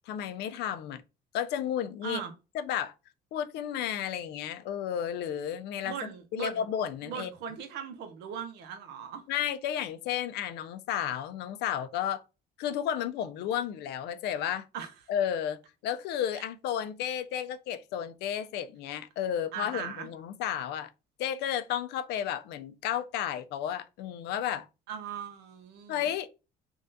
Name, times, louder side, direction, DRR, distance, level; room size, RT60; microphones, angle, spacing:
voice 1, 0.1-1.0 1.3-2.2 2.5-2.9 3.3-7.3 9.3-12.2 12.6-14.6 15.1-20.9 21.2-24.7 25.9-26.3, left 9 dB, 80° left, 0.4 m, -32 dB
voice 2, 2.0-2.3 5.8-6.6 7.0-9.2 14.7-14.9 16.3-16.4 19.5-20.1 24.9-26.1, right 7 dB, 85° right, 0.6 m, -39 dB
3.5 x 2.3 x 2.6 m
cardioid pair, 110°, 17 cm